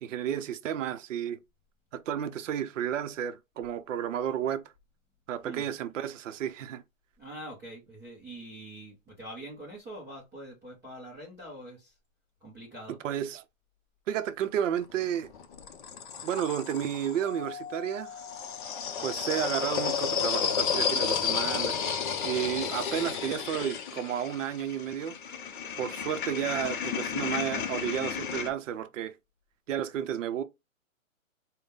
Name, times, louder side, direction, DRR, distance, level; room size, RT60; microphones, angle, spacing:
voice 1, 0.0-1.4 1.9-4.6 5.3-6.8 12.9-13.4 14.1-15.3 16.2-18.2 19.0-21.8 22.2-25.2 25.8-29.1 29.7-30.4, right 10 dB, 65° right, 0.6 m, -32 dB
voice 2, 7.2-11.9 12.4-13.0, right 1 dB, 5° right, 0.5 m, -44 dB
sound 1, 14.8-17.2 18.1-28.5, left 7 dB, 40° left, 0.6 m, -32 dB
Doorbell, 17.2-22.0, left 11 dB, 80° left, 0.8 m, -42 dB
3.9 x 2.1 x 3.4 m
hypercardioid pair, 140°, 41 cm